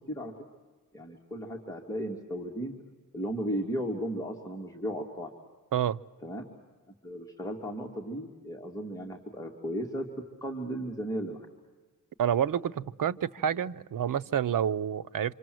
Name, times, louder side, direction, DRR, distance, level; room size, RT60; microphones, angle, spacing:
voice 1, 0.9-2.7 3.1-5.3 6.2-6.5 7.0-10.1 10.4-11.5, equal, 10° left, -1 dB, 2.4 m, -35 dB
voice 2, 12.2-15.3, right 9 dB, 85° right, 12 dB, 0.8 m, -28 dB
27.0 x 26.5 x 7.8 m, 1.3 s
wide cardioid pair, 170°, 32 cm